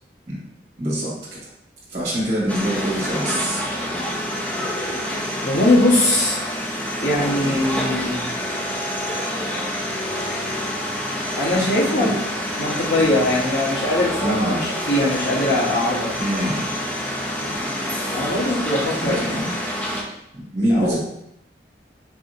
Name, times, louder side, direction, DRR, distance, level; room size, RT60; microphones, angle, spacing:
voice 1, 0.8-1.4 1.9-3.6 7.4-7.6 11.9-12.2 13.0-13.2 14.2-14.6 16.2-16.7 17.6-17.7 19.0-19.5 20.3-21.0, right 1 dB, 40° right, -7 dB, 1.5 m, -25 dB
sound 1, 2.5-20.0, left 1 dB, 10° left, 0.5 m, -27 dB
voice 2, 5.4-6.4 7.0-8.3 11.4-12.2 12.5-16.1 18.1-19.5 20.7-21.0, left 1 dB, 65° left, -5 dB, 1.1 m, -21 dB
4.7 x 2.8 x 2.5 m, 0.80 s
head